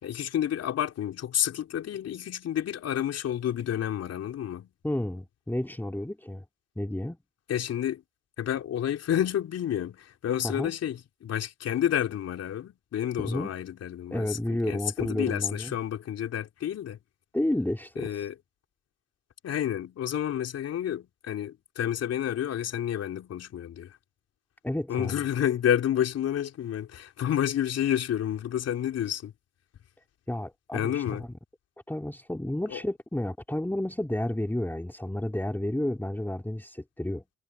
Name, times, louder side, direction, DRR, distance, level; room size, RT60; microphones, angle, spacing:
voice 1, 0.0-4.7 7.5-8.0 8.4-17.0 18.0-18.3 19.4-24.0 24.9-29.3 30.7-31.2 32.7-32.8, left 10 dB, 55° left, 3.4 m, -30 dB
voice 2, 4.8-6.4 6.8-7.2 10.4-10.7 13.2-13.5 14.1-15.7 17.3-18.3 24.6-25.2 30.3-31.3 31.9-37.2, left 1 dB, 5° left, 3.1 m, -31 dB
hypercardioid pair, 55°, 30 cm